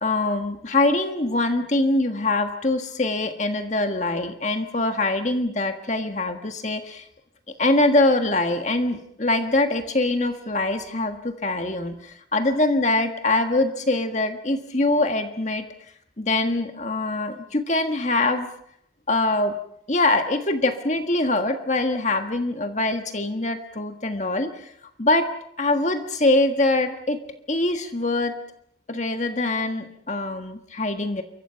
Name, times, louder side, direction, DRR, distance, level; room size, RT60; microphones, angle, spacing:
voice 1, 0.0-7.0 7.6-15.6 16.2-18.5 19.1-19.5 19.9-24.7 25.0-25.3 25.6-27.2 27.5-28.3 28.9-31.2, left 2 dB, 40° left, 6 dB, 1.6 m, -23 dB
28.5 x 24.0 x 5.8 m, 0.70 s
head